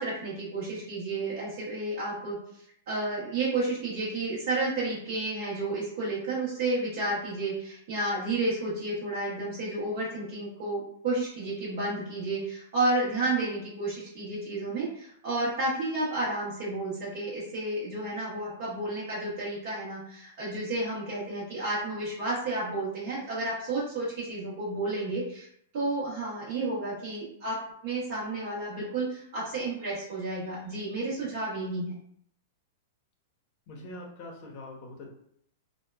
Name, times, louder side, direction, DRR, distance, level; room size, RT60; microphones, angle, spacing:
voice 1, 0.0-2.4 2.9-25.5 25.7-27.6 27.8-31.9, right 2 dB, 55° right, -9 dB, 1.1 m, -31 dB
voice 2, 33.7-35.1, left 1 dB, 45° left, -1 dB, 0.8 m, -43 dB
2.7 x 2.2 x 2.3 m, 0.70 s
hypercardioid pair, 145°, 0 cm